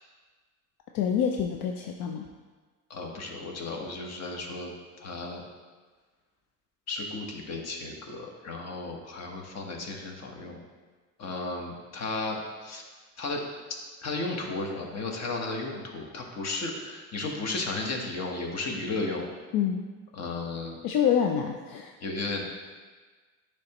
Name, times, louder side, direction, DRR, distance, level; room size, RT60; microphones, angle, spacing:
voice 1, 0.9-2.2 19.5-19.8 20.8-21.9, left 8 dB, 75° left, 3 dB, 0.5 m, -26 dB
voice 2, 2.9-4.7 5.0-5.4 6.9-10.6 11.2-12.8 13.2-13.4 14.0-19.3 20.1-20.8 22.0-22.4, left 3 dB, 50° left, 1 dB, 1.2 m, -34 dB
10.0 x 3.4 x 2.9 m, 1.4 s
cardioid pair, 100°, 34 cm